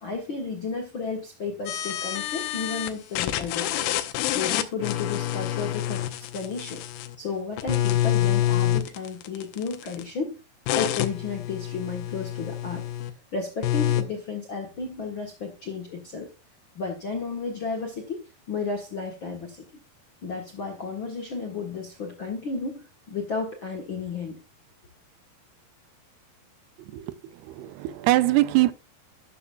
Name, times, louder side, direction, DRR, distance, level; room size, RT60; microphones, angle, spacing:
voice 1, 0.0-3.9 4.2-6.8 7.2-10.3 10.7-12.9 13.3-16.3 16.7-19.6 20.2-24.4, left 4 dB, 55° left, 1.3 m, -33 dB
sound 1, 1.7-2.9 3.2-7.2 7.6-10.0 10.7-13.1 13.6-14.0, left 12 dB, 90° left, 3.0 m, -27 dB
voice 2, 27.6-28.7, right 17 dB, 80° right, 2.7 m, -22 dB
12.5 x 9.8 x 2.4 m
omnidirectional pair, 4.7 m